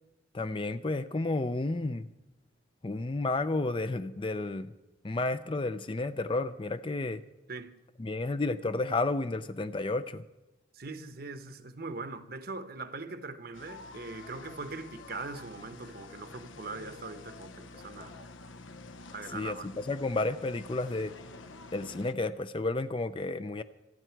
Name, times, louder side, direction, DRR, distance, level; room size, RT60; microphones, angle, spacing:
voice 1, 0.3-2.1 2.8-4.7 5.0-7.2 8.0-10.2 19.3-21.1 21.7-23.6, left 2 dB, 25° left, 0.5 m, -31 dB
voice 2, 10.7-18.2 19.1-19.7, right 3 dB, 50° right, 1.0 m, -41 dB
sound 1, 13.5-22.1, left 3 dB, 80° left, 0.9 m, -48 dB
26.5 x 10.0 x 4.6 m
head